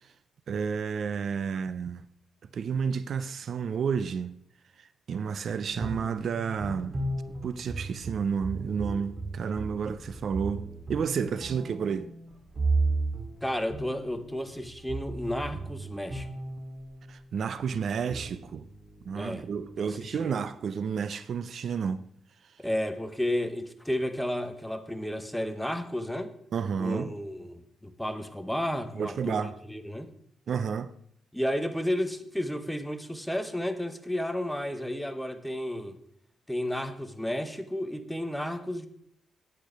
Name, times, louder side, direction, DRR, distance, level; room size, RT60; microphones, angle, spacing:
voice 1, 0.5-2.1 2.5-4.3 4.8-7.0 7.4-10.6 10.9-12.1 17.1-18.6 19.1-22.0 22.4-22.5 26.5-27.1 28.9-29.6 30.5-30.9, right 6 dB, 55° right, 0.4 m, -31 dB
sound 1, 5.7-17.2 17.8-20.2, right 3 dB, 35° right, 2.2 m, -35 dB
voice 2, 13.4-16.3 19.1-19.4 19.8-19.9 20.2-20.4 22.6-26.3 26.8-29.4 29.7-30.1 31.3-36.0 36.5-38.9, left 1 dB, 5° left, 0.8 m, -32 dB
8.7 x 8.5 x 5.0 m
cardioid pair, 115°, 0 cm